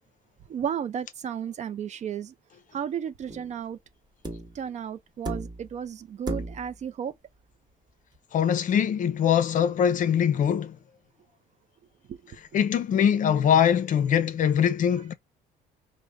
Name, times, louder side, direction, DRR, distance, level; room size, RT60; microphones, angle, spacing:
voice 1, 0.5-2.3 2.7-3.8 4.5-7.1 12.1-12.2, right 8 dB, 45° right, 0.5 m, -33 dB
sound 1, 3.3-3.6 4.2-4.6 5.3-5.8 6.3-6.8 8.2-8.3, right 1 dB, 25° right, 1.3 m, -35 dB
voice 2, 8.3-10.8 12.5-15.1, left 8 dB, 50° left, 0.6 m, -22 dB
4.9 x 2.1 x 3.4 m
cardioid pair, 110°, 17 cm